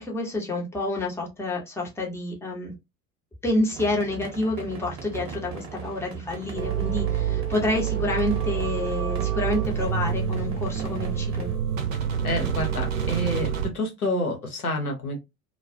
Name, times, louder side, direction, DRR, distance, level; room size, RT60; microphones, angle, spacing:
voice 1, 0.0-2.7 3.4-11.5, left 2 dB, 5° left, -1 dB, 0.7 m, -28 dB
sound 1, 3.7-11.5, right 7 dB, 30° right, 0.9 m, -38 dB
sound 2, 6.6-13.7, right 8 dB, 65° right, 0.6 m, -27 dB
voice 2, 12.2-15.2, left 1 dB, 85° left, 2 dB, 0.8 m, -28 dB
2.3 x 2.1 x 2.5 m, 0.23 s
figure-of-eight pair, 75°, 43 cm